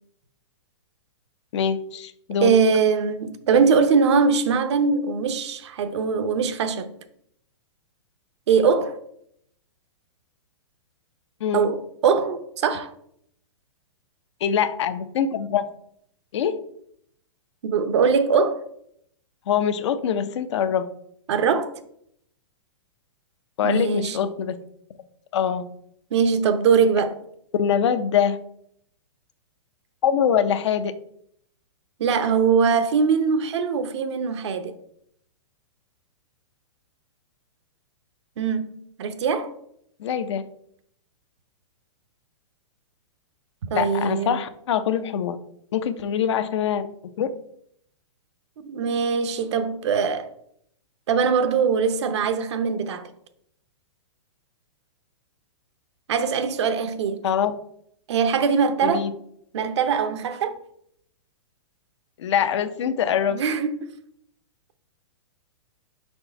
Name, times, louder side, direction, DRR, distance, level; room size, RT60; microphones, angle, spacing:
voice 1, 1.5-2.5 11.4-11.7 14.4-15.6 16.3-16.5 19.5-20.9 23.6-24.6 25.3-25.6 27.5-28.4 30.0-30.9 40.0-40.4 43.7-45.4 45.7-46.8 47.2-47.3 57.2-57.5 58.8-59.1 62.2-63.4, left 8 dB, 65° left, 0.6 m, -23 dB
voice 2, 2.4-6.9 8.5-9.0 11.5-12.9 17.6-18.6 21.3-21.7 23.6-24.2 26.1-27.2 32.0-34.7 38.4-39.5 43.7-44.4 48.6-50.3 51.1-53.1 56.1-57.2 58.1-59.0 59.5-60.5 63.3-63.8, right 5 dB, 65° right, 0.7 m, -22 dB
4.9 x 4.4 x 4.4 m
hypercardioid pair, 150°, 16 cm